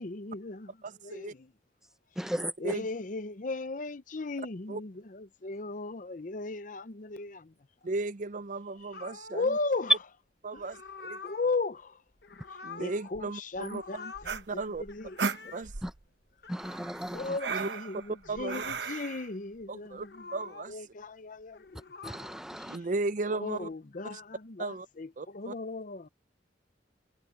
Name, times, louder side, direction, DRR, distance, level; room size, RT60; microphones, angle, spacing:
voice 1, 0.0-1.5 2.2-2.3 2.6-7.5 9.3-10.0 10.5-10.6 11.2-12.0 12.8-15.2 15.4-15.5 17.1-20.2 20.7-21.8 22.5-22.9 23.3-26.1, left 3 dB, 45° left, 0.7 m, -36 dB
voice 2, 0.8-1.3 2.3-2.9 4.7-4.8 7.8-9.4 10.4-11.2 12.6-13.8 14.5-14.8 15.5-15.7 17.5-17.7 18.3-18.6 19.7-20.1 20.3-20.8 22.7-23.7 24.1-24.2 24.6-24.9 25.2-25.5, right 3 dB, 45° right, 0.5 m, -35 dB
voice 3, 2.2-2.5 15.8-15.9 16.5-17.3 22.0-22.8, equal, 5° right, 0.9 m, -36 dB
sound 1, 8.9-9.5 10.6-11.5 12.1-13.3 13.5-14.4 14.8-15.7 16.3-16.6 18.1-18.9 19.9-20.8 21.4-22.5 23.4-23.7, left 4 dB, 60° left, 1.2 m, -47 dB
sound 2, 14.2-16.0 16.6-19.3, right 5 dB, 70° right, 1.0 m, -36 dB
head